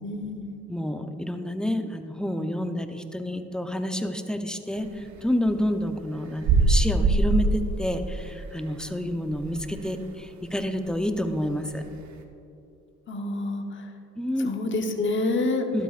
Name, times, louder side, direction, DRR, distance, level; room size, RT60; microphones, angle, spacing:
voice 1, 0.0-0.6 6.5-6.7 13.1-13.9 14.4-15.7, left 2 dB, 40° left, 4 dB, 1.0 m, -28 dB
voice 2, 0.7-11.8 14.2-14.5 15.7-15.8, left 1 dB, 5° left, 6 dB, 0.7 m, -29 dB
sound 1, 4.8-10.0 10.4-10.5 10.8-12.2, right 3 dB, 65° right, 1.0 m, -24 dB
12.5 x 12.0 x 2.5 m, 2.7 s
cardioid pair, 90°, 30 cm